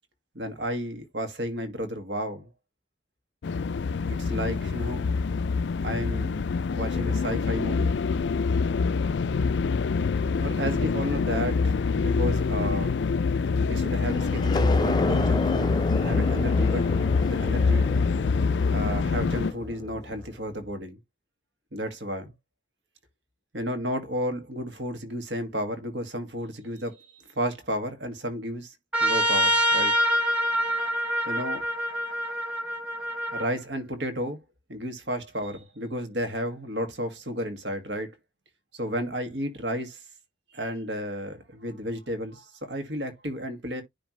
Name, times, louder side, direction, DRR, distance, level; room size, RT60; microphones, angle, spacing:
voice 1, 0.3-2.5 4.1-5.1 5.8-8.0 10.4-13.0 13.6-16.9 17.3-17.9 18.7-21.0 21.7-22.3 23.5-28.7 29.0-29.9 31.3-31.7 33.3-34.4 34.7-38.1 38.8-40.0 40.5-43.8, equal, 75° right, 2.1 m, -32 dB
sound 1, 3.4-19.5, left 4 dB, 75° left, 0.4 m, -25 dB
sound 2, 14.1-20.4, left 2 dB, 25° left, 0.6 m, -30 dB
Trumpet, 28.9-33.5, equal, 5° right, 1.2 m, -25 dB
10.0 x 3.5 x 3.2 m
head